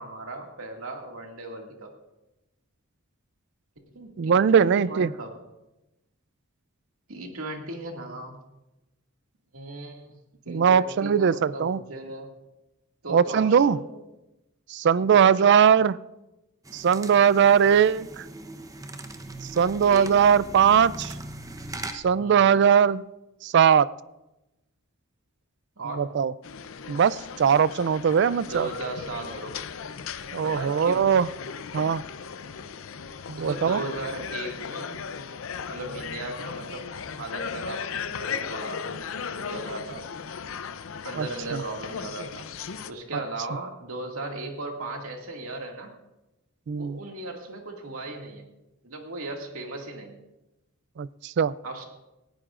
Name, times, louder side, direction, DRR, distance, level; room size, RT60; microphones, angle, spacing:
voice 1, 0.0-1.9 3.9-5.4 7.1-8.4 9.5-10.2 10.5-12.3 13.0-14.0 15.1-15.5 19.8-20.3 22.2-22.6 25.8-26.2 28.5-29.6 30.4-31.1 33.4-35.0 35.7-39.0 39.3-40.1 41.0-42.5 42.9-45.9 46.7-48.5 48.8-50.2 51.6-51.8, right 2 dB, 80° right, 2 dB, 2.1 m, -37 dB
voice 2, 4.2-5.1 10.5-11.8 13.1-13.8 14.7-16.0 16.7-18.2 19.6-21.1 21.9-23.0 23.4-23.9 26.0-26.3 26.9-28.7 30.3-31.3 31.7-32.0 33.3-33.8 41.1-41.3 41.5-41.6 46.7-47.0 51.0-51.5, right 7 dB, 55° right, 19 dB, 0.3 m, -20 dB
sound 1, 16.6-21.9, right 2 dB, 15° right, 0.8 m, -40 dB
sound 2, 26.4-42.9, left 6 dB, 65° left, 0.6 m, -37 dB
19.0 x 15.5 x 2.5 m, 0.97 s
head